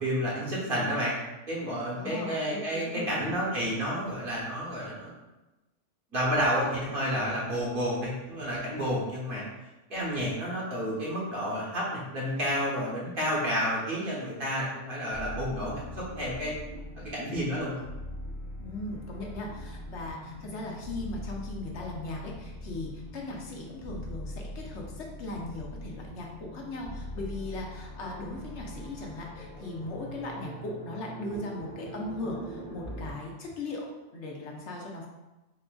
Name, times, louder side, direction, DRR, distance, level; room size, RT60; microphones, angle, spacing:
voice 1, 0.0-1.1 1.5-5.1 6.1-9.4 9.9-16.5 17.1-17.8, equal, 50° right, -5 dB, 1.2 m, -30 dB
voice 2, 1.9-3.4 18.6-33.9 34.1-35.1, left 2 dB, 70° left, -1 dB, 1.0 m, -38 dB
sound 1, 15.1-33.1, left 1 dB, 10° left, 0.5 m, -42 dB
4.1 x 3.7 x 2.3 m, 1.0 s
omnidirectional pair, 1.2 m